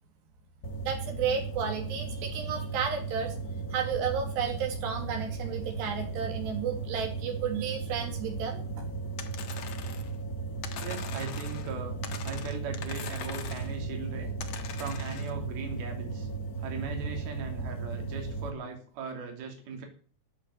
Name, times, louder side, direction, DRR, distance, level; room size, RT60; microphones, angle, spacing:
sound 1, 0.6-18.5, right 4 dB, 75° left, 0.8 m, -36 dB
voice 1, 0.8-3.4 3.7-8.9, right 7 dB, 90° right, 3 dB, 4.9 m, -32 dB
sound 2, 9.2-10.1 10.6-11.7 12.0-13.8 14.4-15.3, left 8 dB, 55° left, 2.4 m, -42 dB
voice 2, 10.8-12.0 12.2-14.3 14.8-16.3 16.6-19.9, right 5 dB, 70° right, 3 dB, 4.8 m, -39 dB
14.0 x 8.6 x 10.0 m, 0.43 s
omnidirectional pair, 4.7 m